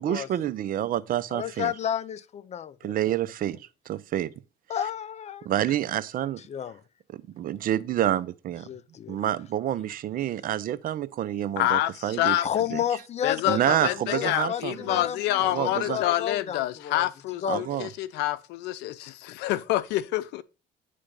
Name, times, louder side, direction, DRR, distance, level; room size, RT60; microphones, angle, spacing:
voice 1, 0.0-1.7 2.8-4.3 5.4-6.4 7.1-8.7 9.1-12.4 12.7-12.8 13.5-15.0 15.4-16.0 17.5-17.9, right 11 dB, 55° right, 0.6 m, -28 dB
voice 2, 1.3-2.9 4.7-5.5 6.5-6.8 8.7-9.2 12.4-17.1 17.4-17.8, left 9 dB, 40° left, 0.6 m, -32 dB
voice 3, 11.6-12.5 13.2-20.4, left 14 dB, 90° left, 0.6 m, -27 dB
10.0 x 3.4 x 5.1 m
cardioid pair, 110°, 17 cm